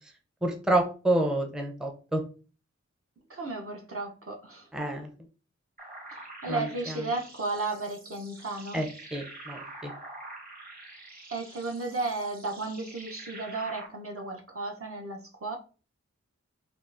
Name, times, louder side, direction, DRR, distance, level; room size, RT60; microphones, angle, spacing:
voice 1, 0.4-2.2 4.7-5.1 6.5-7.0 8.7-9.9, right 1 dB, ahead, 0.5 m, -29 dB
voice 2, 3.3-4.7 6.1-8.8 11.3-15.6, right 3 dB, 50° right, 0.7 m, -34 dB
sound 1, 5.8-13.9, right 2 dB, 30° right, 1.2 m, -46 dB
3.6 x 2.2 x 2.4 m
wide cardioid pair, 45°, 29 cm